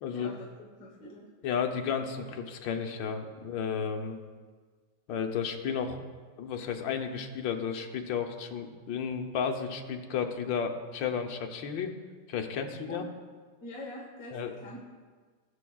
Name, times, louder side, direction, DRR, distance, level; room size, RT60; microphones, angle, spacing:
voice 1, 0.1-1.3 12.9-13.1 13.6-15.0, left 1 dB, 50° left, -2 dB, 1.5 m, -44 dB
voice 2, 1.4-4.2 5.1-6.0 6.4-11.9 12.3-13.0 14.3-14.5, left 7 dB, 75° left, 4 dB, 1.5 m, -33 dB
18.5 x 7.1 x 2.3 m, 1.5 s
omnidirectional pair, 2.1 m